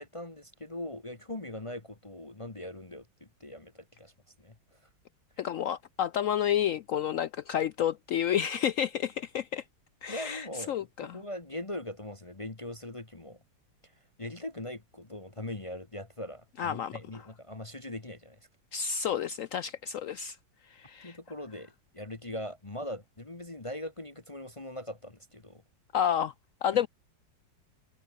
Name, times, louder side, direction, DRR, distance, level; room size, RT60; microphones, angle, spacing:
voice 1, 0.0-4.1 4.4-4.8 10.1-13.4 13.8-13.9 14.2-18.4 21.0-25.6, left 1 dB, 20° left, 1.1 m, -41 dB
voice 2, 5.4-9.6 10.0-11.2 16.6-17.0 18.7-20.4 20.7-21.2 25.9-26.3 26.6-26.9, left 9 dB, 85° left, 0.7 m, -30 dB
omnidirectional pair, 2.0 m